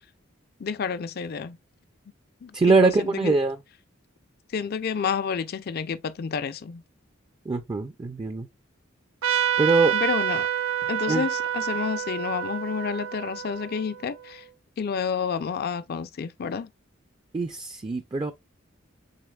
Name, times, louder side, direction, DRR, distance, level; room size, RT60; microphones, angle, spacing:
voice 1, 0.6-1.6 2.4-3.3 4.5-6.8 9.9-10.5 10.9-14.4 14.8-16.7, left 6 dB, 50° left, 0.4 m, -30 dB
voice 2, 2.5-3.6 7.5-8.5 9.6-9.9 11.1-11.2 17.3-18.3, right 3 dB, 25° right, 0.4 m, -22 dB
Trumpet, 9.2-14.3, right 9 dB, 90° right, 0.5 m, -28 dB
6.5 x 3.4 x 2.3 m
head